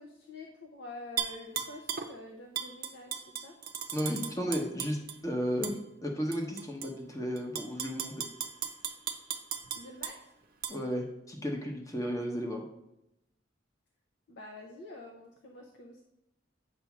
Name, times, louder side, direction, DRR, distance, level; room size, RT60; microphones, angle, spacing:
voice 1, 0.0-3.5 9.7-10.3 14.3-16.0, left 2 dB, 70° left, 1 dB, 0.7 m, -47 dB
Tap / Glass, 1.2-2.1 2.6-5.2 5.6-5.8 6.3-6.9 7.4-10.2 10.6-10.7, right 8 dB, 50° right, 0.6 m, -36 dB
voice 2, 3.9-5.0 5.2-8.1 10.7-12.7, equal, 20° left, 1 dB, 1.0 m, -34 dB
8.2 x 2.7 x 5.9 m, 0.84 s
head